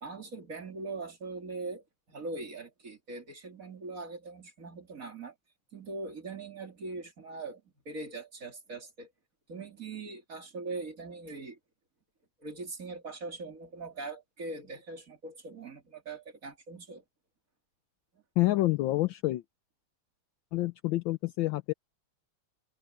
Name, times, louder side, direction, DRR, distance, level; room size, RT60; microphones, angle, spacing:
voice 1, 0.0-5.3 5.7-9.1 9.5-11.6 12.4-17.0 18.1-18.2, right 3 dB, 40° right, 3.0 m, -41 dB
voice 2, 18.4-19.4 20.5-21.7, left 18 dB, 75° left, 1.2 m, -28 dB
omnidirectional pair, 2.4 m